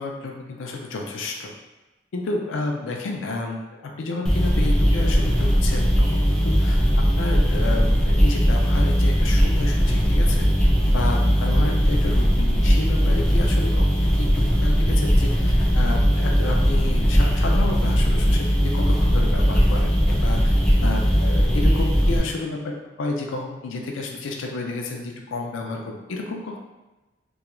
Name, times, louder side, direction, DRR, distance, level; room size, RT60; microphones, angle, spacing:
voice 1, 0.0-1.5 2.1-10.5 10.9-20.5 20.8-26.6, left 3 dB, 80° left, 1 dB, 0.4 m, -31 dB
sound 1, 4.2-22.2, equal, 5° left, 0.6 m, -19 dB
2.3 x 2.3 x 2.9 m, 1.1 s
head